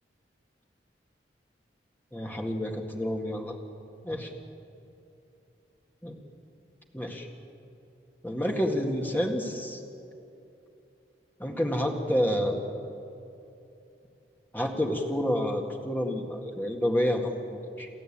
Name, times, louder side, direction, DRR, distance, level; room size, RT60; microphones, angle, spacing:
voice 1, 2.1-3.6 4.0-4.3 6.0-6.2 6.9-7.3 8.2-9.8 11.4-12.6 14.5-17.9, equal, 10° left, 1 dB, 1.9 m, -29 dB
28.5 x 13.5 x 8.8 m, 2.8 s
head